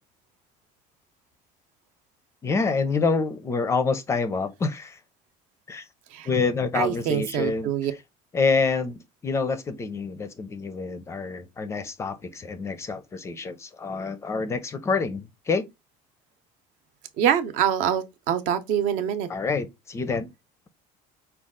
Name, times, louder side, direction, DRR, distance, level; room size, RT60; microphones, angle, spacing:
voice 1, 2.4-5.0 5.7-5.9 6.2-7.7 8.3-15.7 19.3-20.3, left 4 dB, 20° left, 0.4 m, -27 dB
voice 2, 6.7-7.9 17.2-19.3, right 9 dB, 60° right, 0.7 m, -25 dB
5.1 x 2.3 x 3.6 m
cardioid pair, 170°, 15 cm